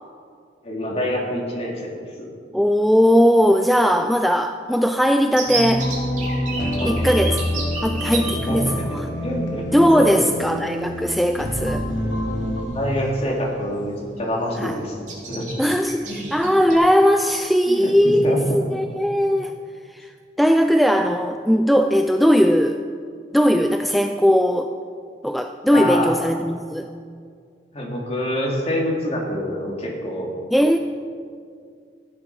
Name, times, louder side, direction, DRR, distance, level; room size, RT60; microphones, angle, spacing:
voice 1, 0.6-1.9 6.8-7.1 7.8-7.9 8.2-8.7 9.2-9.7 9.9-10.3 12.6-15.0 15.3-15.5 16.1-16.3 17.7-18.4 25.7-26.1 27.7-30.3, equal, 35° left, -1 dB, 2.5 m, -26 dB
voice 2, 2.5-5.9 6.8-7.4 7.8-9.1 9.7-11.9 14.6-14.8 15.6-19.5 19.9-20.1 20.4-22.8 23.3-24.7 25.2-26.9 30.5-30.8, equal, ahead, 6 dB, 0.3 m, -19 dB
sound 1, 5.3-8.3 9.3-9.4 9.7-9.9 11.5-11.7 12.1-12.4 12.8-13.5 13.8-14.0 14.2-14.7 15.1-16.7, right 4 dB, 45° right, 3.3 m, -31 dB
sound 2, 5.5-12.6, left 1 dB, 75° left, 2.4 m, -26 dB
15.0 x 9.9 x 5.5 m, 2.2 s
head